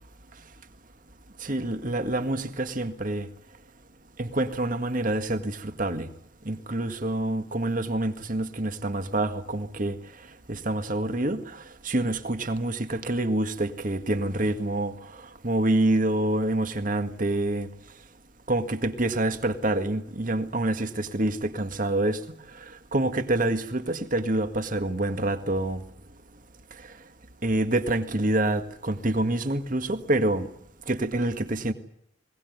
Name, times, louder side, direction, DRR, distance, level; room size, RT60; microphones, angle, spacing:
voice 1, 1.4-3.3 4.2-6.1 6.5-10.0 10.5-14.9 15.4-17.7 18.5-22.2 22.6-25.8 27.4-30.5 30.9-31.7, right 1 dB, 45° right, 1.8 m, -27 dB
21.0 x 18.5 x 9.5 m
head